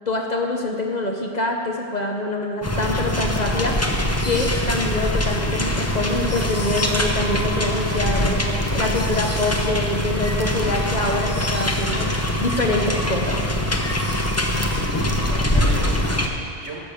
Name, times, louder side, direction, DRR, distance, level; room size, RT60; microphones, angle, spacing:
voice 1, 0.1-3.8 4.2-8.5 8.7-12.1 12.4-13.5, left 2 dB, 40° left, 1 dB, 0.9 m, -25 dB
sound 1, 2.6-16.3, left 1 dB, 15° left, 0.7 m, -23 dB
voice 2, 14.6-16.8, right 2 dB, 70° right, -1 dB, 2.1 m, -36 dB
11.5 x 6.8 x 7.0 m, 2.4 s
omnidirectional pair, 1.3 m